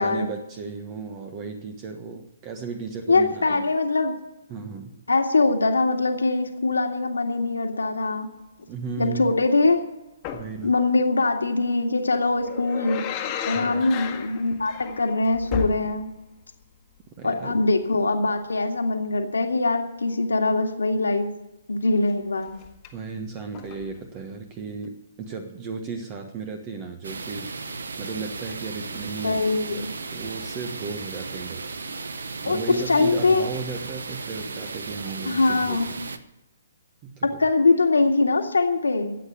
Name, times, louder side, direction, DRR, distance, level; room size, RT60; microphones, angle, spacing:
voice 1, 0.0-3.7 4.5-5.0 8.7-9.3 10.3-10.7 13.5-13.9 17.2-17.6 22.9-27.5 28.0-29.4 29.7-31.6 32.4-35.9 37.0-37.4, right 5 dB, 30° right, 6 dB, 1.3 m, -35 dB
voice 2, 3.1-4.1 5.1-8.3 9.0-9.8 10.6-13.0 13.5-16.1 17.2-21.3 21.7-22.6 29.2-29.9 32.4-32.6 32.9-33.5 35.3-35.9 37.2-39.2, left 3 dB, 80° left, 4 dB, 2.0 m, -22 dB
sound 1, 10.2-10.6 12.1-16.3 16.6-16.7 22.5-22.9 23.5-24.0 24.8-24.9, left 8 dB, 30° left, 1.5 m, -33 dB
sound 2, 27.0-36.2, right 4 dB, 70° right, 1.0 m, -35 dB
13.5 x 8.5 x 8.4 m, 0.97 s
figure-of-eight pair, 135°, 0 cm